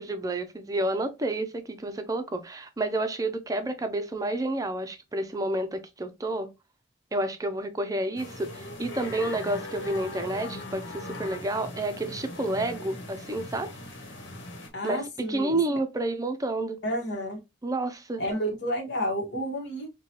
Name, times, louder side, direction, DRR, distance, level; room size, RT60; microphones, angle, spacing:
voice 1, 0.0-6.5 7.1-13.7 14.8-15.0 15.3-16.8 17.6-18.2, right 2 dB, 20° right, 0.5 m, -30 dB
sound 1, 8.2-14.7, left 1 dB, 90° left, 1.1 m, -40 dB
voice 2, 14.7-15.6 16.8-17.4 18.2-19.9, equal, 65° left, 1.1 m, -30 dB
4.7 x 2.2 x 2.8 m
head